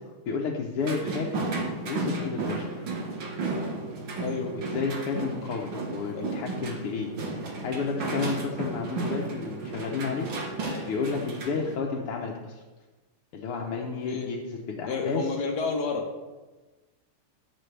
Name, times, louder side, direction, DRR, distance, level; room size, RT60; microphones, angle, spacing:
voice 1, 0.3-1.5 1.9-2.9 4.5-10.3 10.6-12.6 13.3-15.3, left 5 dB, 80° left, -1 dB, 1.9 m, -32 dB
sound 1, 0.8-11.8, right 3 dB, 65° right, 2.2 m, -33 dB
voice 2, 4.1-4.5 6.1-6.2 14.0-14.3 14.8-16.1, left 4 dB, 55° left, 0 dB, 1.5 m, -30 dB
15.5 x 7.3 x 3.4 m, 1.2 s
omnidirectional pair, 2.4 m